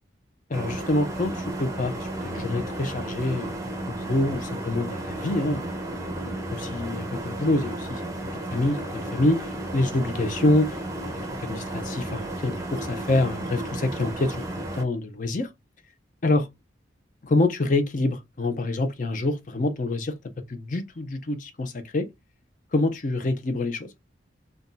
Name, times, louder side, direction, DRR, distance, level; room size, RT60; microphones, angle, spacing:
voice 1, 0.5-5.7 6.3-10.8 11.4-15.5 16.2-16.5 17.2-20.2 20.5-22.1 22.7-23.9, left 2 dB, 45° left, 0.5 m, -26 dB
sound 1, 0.5-14.8, right 1 dB, 15° right, 0.6 m, -33 dB
2.6 x 2.3 x 3.8 m
head